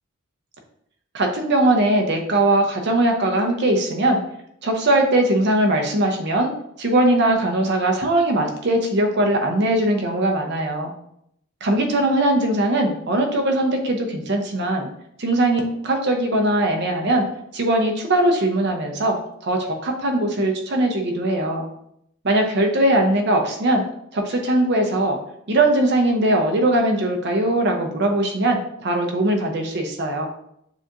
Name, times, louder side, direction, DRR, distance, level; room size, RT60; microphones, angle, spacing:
voice 1, 1.1-4.2 4.6-6.5 6.8-10.9 11.6-14.9 15.2-17.2 17.5-21.6 22.2-23.8 24.1-25.2 25.5-30.3, right 1 dB, 50° right, 3 dB, 0.7 m, -20 dB
6.8 x 2.5 x 2.9 m, 0.73 s
head